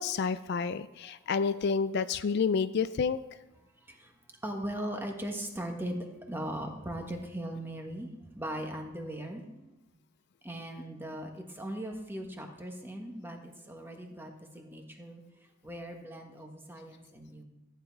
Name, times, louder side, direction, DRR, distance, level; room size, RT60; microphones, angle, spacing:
voice 1, 0.0-3.2, left 5 dB, 50° left, 13 dB, 0.4 m, -29 dB
voice 2, 4.4-9.7 10.4-15.2 15.6-17.4, right 1 dB, 10° right, 3 dB, 1.4 m, -39 dB
14.5 x 9.2 x 4.7 m, 0.99 s
head